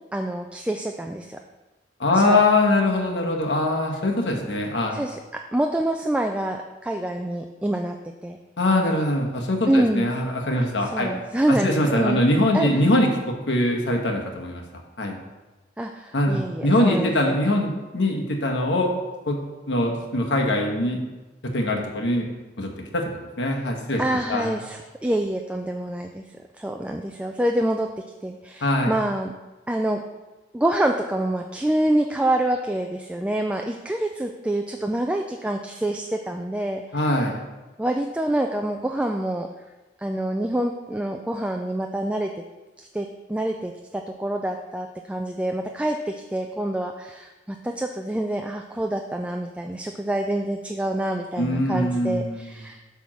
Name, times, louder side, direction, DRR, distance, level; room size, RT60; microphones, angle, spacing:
voice 1, 0.1-1.4 2.1-2.4 4.9-8.0 8.2-8.4 9.7-10.1 10.9-12.2 12.5-12.7 15.8-17.4 24.0-26.2 26.6-29.3 29.7-30.0 30.5-37.3 37.8-39.5 40.0-42.3 42.8-52.8, right 1 dB, 5° right, 3 dB, 0.3 m, -26 dB
voice 2, 2.0-5.0 8.6-11.1 11.5-14.6 15.0-15.2 16.1-18.9 19.3-19.4 19.7-21.0 21.4-22.3 22.6-23.0 23.4-24.0 24.3-24.6 28.6-28.9 36.9-37.4 51.4-52.5, left 1 dB, 80° left, 1 dB, 1.3 m, -22 dB
8.7 x 3.6 x 6.2 m, 1.1 s
head